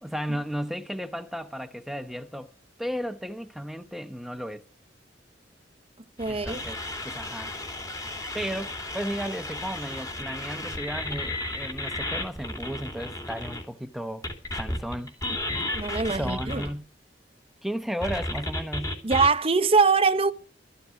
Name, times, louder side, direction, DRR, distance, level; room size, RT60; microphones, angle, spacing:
voice 1, 0.0-2.5 2.8-4.6 6.2-6.8 7.0-7.5 8.3-14.3 14.5-15.1 16.1-16.9 17.6-19.0, equal, ahead, 0.9 m, -34 dB
sound 1, 6.2-13.6 14.2-16.7 18.0-19.3, left 1 dB, 20° left, 3.1 m, -33 dB
voice 2, 6.2-6.6 15.7-16.6 19.0-20.3, right 4 dB, 30° right, 0.8 m, -22 dB
14.0 x 7.3 x 9.4 m
head